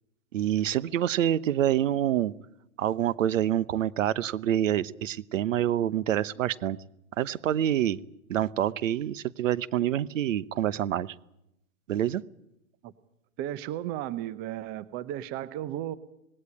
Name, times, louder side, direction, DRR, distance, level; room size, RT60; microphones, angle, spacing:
voice 1, 0.3-2.3 2.8-6.8 7.2-8.0 8.3-11.1 11.9-12.2, right 11 dB, 60° right, 18 dB, 1.0 m, -27 dB
voice 2, 13.4-15.9, right 12 dB, 25° right, 16 dB, 0.8 m, -34 dB
19.0 x 18.0 x 9.8 m, 0.84 s
hypercardioid pair, 135°, 43 cm